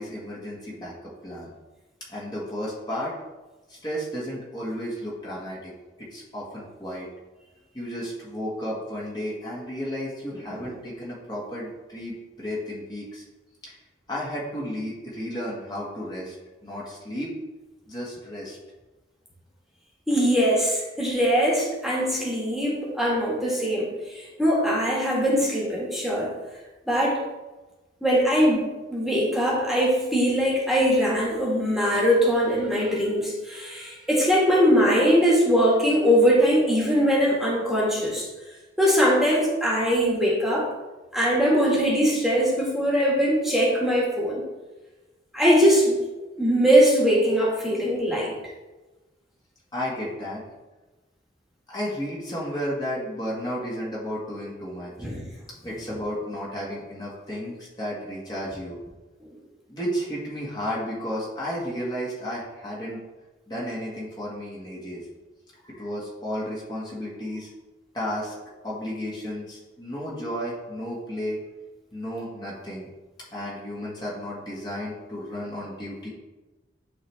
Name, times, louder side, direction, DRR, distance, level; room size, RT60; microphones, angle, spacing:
voice 1, 0.0-1.5 2.1-3.1 3.7-5.7 6.0-7.1 7.7-13.2 13.6-13.7 14.1-16.4 16.6-17.3 17.9-18.6 49.7-50.4 51.7-54.9 55.6-58.8 59.7-63.0 63.5-65.0 65.6-67.5 67.9-68.3 68.6-71.4 71.9-72.9 73.3-76.1, equal, 25° left, -6 dB, 1.6 m, -33 dB
voice 2, 20.1-26.3 26.9-27.2 28.0-38.2 38.8-40.7 41.1-44.4 45.3-45.9 46.4-48.3 55.0-55.3, equal, ahead, -5 dB, 1.7 m, -21 dB
11.0 x 3.9 x 3.4 m, 1.2 s
head